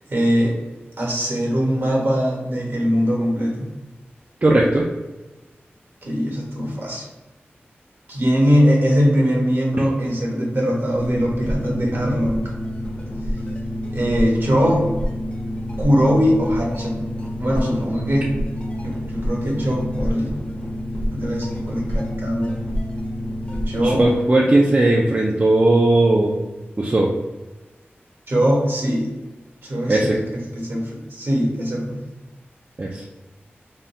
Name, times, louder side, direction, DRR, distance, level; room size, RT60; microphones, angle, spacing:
voice 1, 0.1-0.5 1.0-3.7 6.0-7.1 8.1-12.4 13.9-14.9 15.8-17.1 17.4-18.3 18.8-20.3 21.1-22.6 23.7-24.0 28.3-29.1 29.6-32.0, equal, 60° right, -2 dB, 1.1 m, -21 dB
voice 2, 4.4-4.9 23.8-26.4 26.8-27.1 29.9-30.2 32.8-33.0, right 2 dB, 40° right, -2 dB, 0.4 m, -17 dB
sound 1, 10.9-24.2, equal, 30° left, 0.7 m, -28 dB
3.5 x 2.3 x 2.6 m, 1.1 s
cardioid pair, 50°, 4 cm